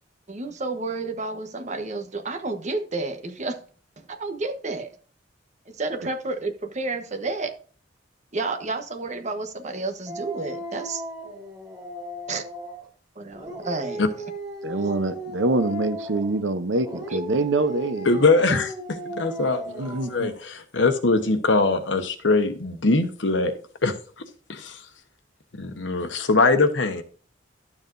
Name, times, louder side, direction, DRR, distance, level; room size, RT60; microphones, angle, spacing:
voice 1, 0.3-3.6 4.0-4.9 5.7-7.5 8.3-11.0 12.3-12.4 13.1-14.0 14.7-14.9, right 3 dB, 40° right, 1.2 m, -30 dB
Dog, 10.1-12.9 13.3-16.4 16.8-20.4, equal, 20° right, 3.4 m, -36 dB
voice 2, 14.6-18.2 19.8-20.3, right 2 dB, 85° right, 0.8 m, -25 dB
voice 3, 18.0-18.7 19.1-23.5 23.8-23.9 24.5-24.8 25.6-27.0, left 3 dB, 80° left, 1.1 m, -22 dB
12.0 x 7.2 x 2.7 m
head